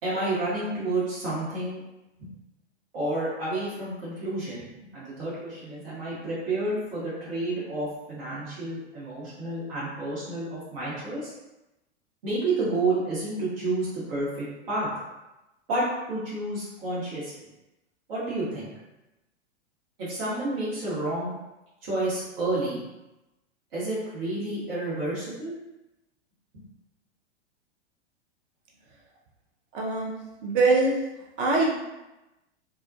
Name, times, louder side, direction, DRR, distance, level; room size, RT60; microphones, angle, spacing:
voice 1, 0.0-1.8 2.2-2.3 2.9-11.3 12.2-14.9 15.7-17.4 18.1-18.7 20.0-21.3 21.8-22.8 23.7-25.5, right 2 dB, 55° right, -9 dB, 1.1 m, -30 dB
voice 2, 29.7-30.2 30.4-30.9 31.4-31.7, right 3 dB, 25° right, -1 dB, 0.4 m, -22 dB
2.3 x 2.1 x 2.6 m, 0.99 s
figure-of-eight pair, 95°, 35 cm